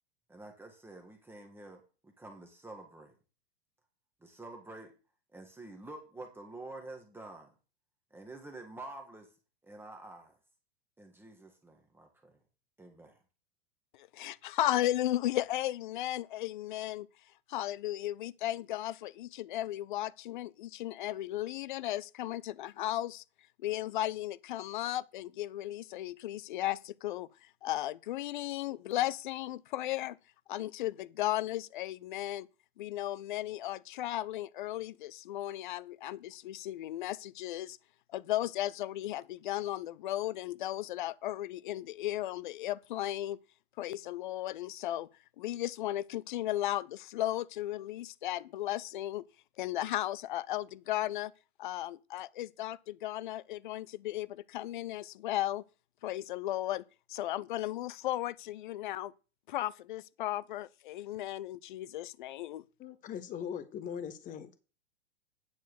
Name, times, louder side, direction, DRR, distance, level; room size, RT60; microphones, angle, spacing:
voice 1, 0.3-3.1 4.2-4.9 5.3-7.5 8.1-9.3 9.6-10.3 11.0-12.3 12.8-13.2, right 2 dB, 5° right, 1.5 m, -48 dB
voice 2, 14.0-17.1 17.5-23.2 23.6-27.3 27.6-30.2 30.5-32.5 32.8-37.8 38.1-43.4 43.8-45.1 45.4-49.3 49.6-51.3 51.6-55.6 56.0-56.8 57.1-59.1 59.5-62.6, left 14 dB, 50° left, 0.6 m, -35 dB
voice 3, 62.8-64.5, left 8 dB, 25° left, 1.0 m, -40 dB
9.4 x 4.6 x 6.8 m
figure-of-eight pair, 95°, 32 cm